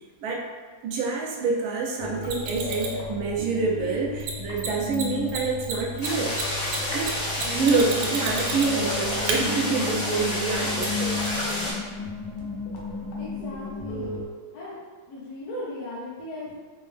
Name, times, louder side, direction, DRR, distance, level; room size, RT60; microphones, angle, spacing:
voice 1, 0.8-6.3 6.9-11.3, right 4 dB, 70° right, -1 dB, 0.8 m, -27 dB
sound 1, 2.0-14.3, left 4 dB, 65° left, 1.1 m, -34 dB
Mechanisms, 2.2-3.0 4.2-4.3 4.6-4.7 4.9-5.0 5.3-8.9 9.3-9.4 10.8-10.9, right 6 dB, 90° right, 1.5 m, -31 dB
sound 2, 6.0-11.7, left 1 dB, 50° left, 0.4 m, -29 dB
voice 2, 13.2-14.2 14.5-14.8 15.1-16.6, left 1 dB, 80° left, -10 dB, 1.6 m, -37 dB
5.1 x 2.1 x 3.2 m, 1.5 s
omnidirectional pair, 2.2 m